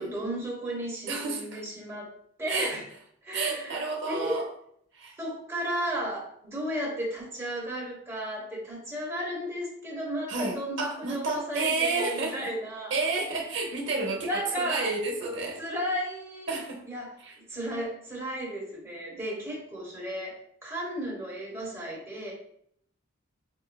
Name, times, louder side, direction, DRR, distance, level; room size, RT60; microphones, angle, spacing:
voice 1, 0.0-2.9 3.2-4.5 5.2-12.9 14.2-14.9 15.6-16.5 16.9-22.3, equal, 15° right, -5 dB, 1.1 m, -34 dB
voice 2, 1.1-1.6 2.5-2.7 3.3-4.5 4.9-5.1 10.3-12.5 12.9-15.6 16.5-16.8 17.2-17.4, right 3 dB, 60° right, 1 dB, 0.7 m, -30 dB
5.1 x 2.1 x 2.2 m, 0.68 s
head